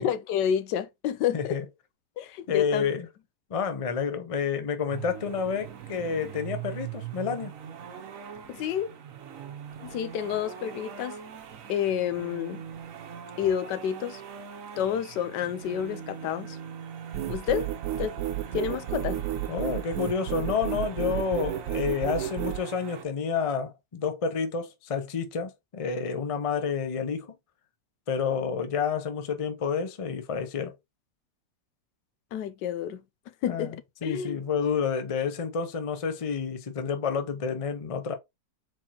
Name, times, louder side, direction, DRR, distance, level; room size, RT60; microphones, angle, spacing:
voice 1, 0.0-1.6 2.2-2.9 8.5-8.9 9.8-11.2 11.7-12.6 13.4-14.2 14.8-16.6 17.3-17.7 18.0-18.2 18.5-19.2 32.3-33.0 33.4-33.8 34.0-34.4, left 9 dB, 90° left, 1.3 m, -29 dB
voice 2, 1.3-1.6 2.5-3.1 3.5-7.5 19.5-27.4 28.1-30.7 33.5-33.7 34.0-38.1, left 6 dB, 55° left, 0.3 m, -29 dB
sound 1, 4.9-23.0, right 8 dB, 65° right, 1.0 m, -42 dB
sound 2, 17.1-22.6, right 12 dB, 80° right, 1.2 m, -31 dB
4.3 x 4.2 x 2.8 m
omnidirectional pair, 1.8 m